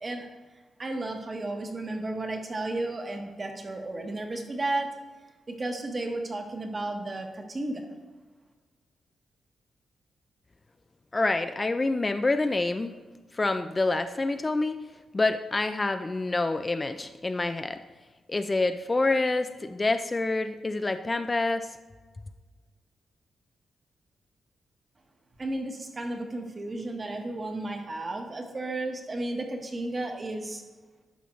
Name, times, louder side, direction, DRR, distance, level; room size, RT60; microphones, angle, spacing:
voice 1, 0.8-4.9 5.5-7.9 25.4-30.6, right 2 dB, 35° right, 3 dB, 1.2 m, -33 dB
voice 2, 11.1-13.0 13.3-14.8 15.1-17.8 18.3-21.8, left 2 dB, 25° left, 9 dB, 0.3 m, -27 dB
11.0 x 5.6 x 3.1 m, 1.3 s
cardioid pair, 95°, 0 cm